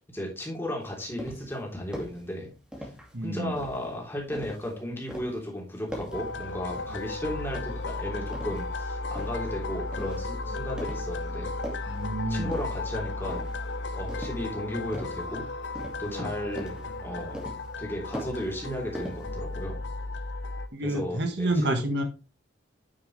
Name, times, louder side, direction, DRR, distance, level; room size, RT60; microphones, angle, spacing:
voice 1, 0.1-2.5 2.8-2.9 3.2-11.6 12.3-13.5 13.9-15.5 16.0-17.4 17.8-19.8 20.8-21.8, left 1 dB, 10° left, -2 dB, 3.3 m, -35 dB
sound 1, 0.8-1.6 1.9-2.2 2.7-3.2 3.6-4.7 5.1-5.4 5.9-6.3 6.7-7.1 7.5-8.7 9.2-9.5 9.9-10.3 10.8-11.2 11.5-12.0 12.5-12.9 13.3-13.7 14.1-14.5 14.9-15.3 15.8-16.3 16.6-16.9 17.3-17.8 18.1-18.7 18.9-19.6, equal, 5° right, 2.2 m, -40 dB
voice 2, 3.1-3.5 11.9-12.5 16.1-16.3 20.7-22.0, right 1 dB, 60° right, 5 dB, 1.5 m, -29 dB
sound 2, 6.1-20.7, left 2 dB, 75° left, 0.9 m, -35 dB
9.2 x 6.9 x 3.3 m, 0.33 s
head